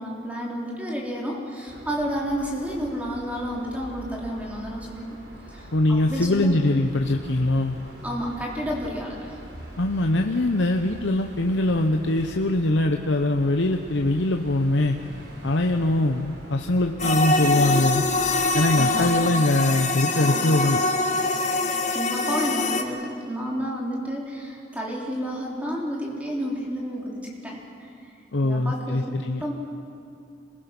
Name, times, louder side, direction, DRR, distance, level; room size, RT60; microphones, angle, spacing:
voice 1, 0.0-5.2 5.5-6.5 8.0-9.4 18.8-19.1 21.9-27.9 28.4-29.1 29.4-29.5, equal, 10° right, -3 dB, 3.7 m, -31 dB
sound 1, 1.7-19.2, equal, 60° right, 4.0 m, -43 dB
voice 2, 5.7-7.8 9.8-15.0 15.4-18.0 18.5-20.8 28.3-29.5, left 1 dB, 80° left, 4 dB, 0.9 m, -22 dB
sound 2, 17.0-22.8, left 2 dB, 40° left, 1.5 m, -24 dB
26.5 x 21.5 x 6.1 m, 2.6 s
head